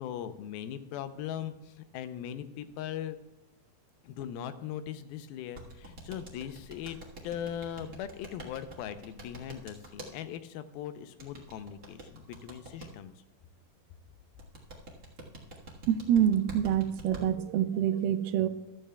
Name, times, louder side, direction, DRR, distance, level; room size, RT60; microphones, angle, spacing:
voice 1, 0.0-3.2 4.0-7.0 7.2-13.1, left 10 dB, 85° left, 11 dB, 2.5 m, -39 dB
sound 1, 5.5-10.1 11.2-12.9 14.4-17.2, right 2 dB, 70° right, 0.8 m, -45 dB
voice 2, 15.9-18.5, right 10 dB, 90° right, 10 dB, 2.5 m, -26 dB
15.0 x 12.5 x 2.3 m, 1.0 s
omnidirectional pair, 4.2 m